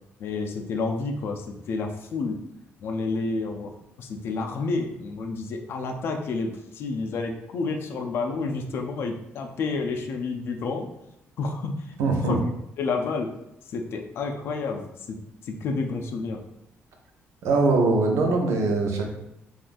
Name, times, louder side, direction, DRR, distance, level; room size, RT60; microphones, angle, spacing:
voice 1, 0.2-2.4 2.8-10.9 11.4-12.4 12.8-13.3 13.7-15.2 15.4-16.4, left 3 dB, 55° left, 3 dB, 0.4 m, -30 dB
voice 2, 12.0-12.4 17.4-19.1, right 3 dB, 80° right, 2 dB, 0.6 m, -22 dB
3.6 x 2.4 x 2.5 m, 0.85 s
cardioid pair, 165°, 5 cm